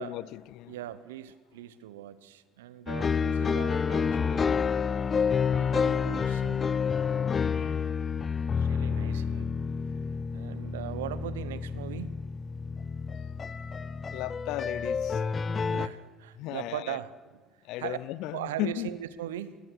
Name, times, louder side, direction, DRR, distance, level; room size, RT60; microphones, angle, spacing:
voice 1, 0.0-0.8 14.0-15.2 16.3-17.0 17.6-18.9, left 15 dB, 65° left, 0.5 m, -36 dB
voice 2, 0.7-4.6 5.4-6.7 8.5-9.5 10.3-12.2 15.7-17.4 17.8-18.0 18.3-19.6, right 12 dB, 80° right, 0.9 m, -39 dB
sound 1, 2.9-15.9, left 6 dB, 35° left, 0.8 m, -29 dB
21.0 x 20.0 x 6.4 m
hypercardioid pair, 60°, 0 cm